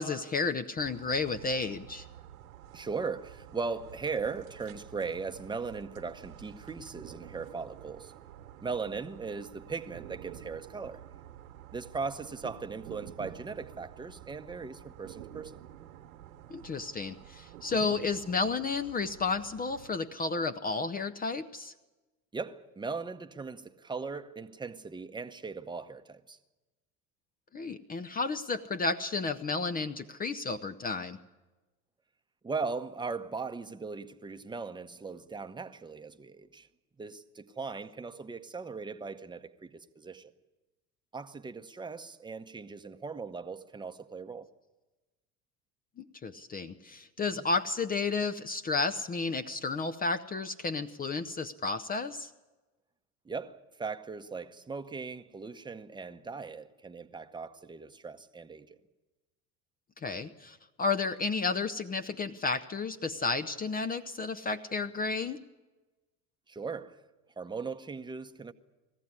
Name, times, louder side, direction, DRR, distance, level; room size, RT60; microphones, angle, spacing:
voice 1, 0.0-2.0 16.5-21.7 27.5-31.2 46.0-52.3 60.0-65.4, left 4 dB, 20° left, 0.7 m, -32 dB
sound 1, 0.8-20.0, right 11 dB, 70° right, 1.4 m, -50 dB
voice 2, 2.7-8.1 8.6-11.0 11.7-15.6 17.8-17.9 22.3-26.4 32.4-36.7 37.0-40.3 41.1-44.5 47.3-47.5 53.2-58.8 66.5-67.0 67.4-68.5, right 4 dB, 10° right, 0.9 m, -38 dB
19.5 x 15.0 x 9.7 m
figure-of-eight pair, 70°, 44 cm